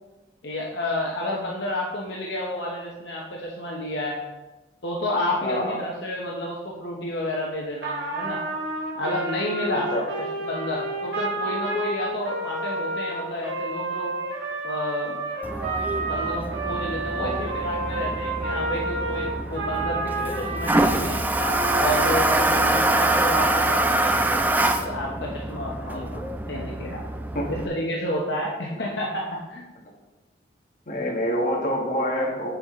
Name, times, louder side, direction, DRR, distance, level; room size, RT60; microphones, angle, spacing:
voice 1, 0.4-4.2 4.8-8.4 8.9-9.9 10.2-14.2 14.6-15.2 16.1-21.2 21.7-24.4 24.8-26.2 26.5-27.1 27.5-29.7, left 1 dB, 65° left, -3 dB, 1.0 m, -30 dB
voice 2, 5.4-5.8 9.7-10.1 17.2-17.4 22.9-23.0 25.8-26.2 27.3-27.5 28.7-28.9 30.9-32.5, equal, 45° left, -1 dB, 1.4 m, -27 dB
Trumpet, 7.8-20.9 21.4-23.9, right 2 dB, 60° right, 2.0 m, -30 dB
Toilet flush, 15.4-27.7, right 2 dB, 10° right, 0.3 m, -25 dB
7.3 x 7.0 x 3.7 m, 1.1 s
head